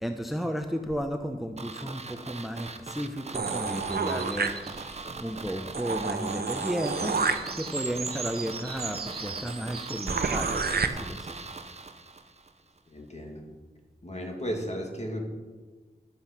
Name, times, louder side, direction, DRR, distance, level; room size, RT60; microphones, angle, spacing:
voice 1, 0.0-7.2 7.5-11.4, equal, ahead, 6 dB, 0.8 m, -34 dB
sound 1, 1.6-12.5 12.8-12.9, right 3 dB, 40° right, 0.9 m, -41 dB
sound 2, 3.3-5.0 5.4-5.5 5.7-10.9, right 4 dB, 70° right, 0.9 m, -31 dB
voice 2, 12.9-13.4 14.0-15.3, equal, 40° left, 1 dB, 2.3 m, -34 dB
11.5 x 8.5 x 6.0 m, 1.3 s
wide cardioid pair, 75°, 17 cm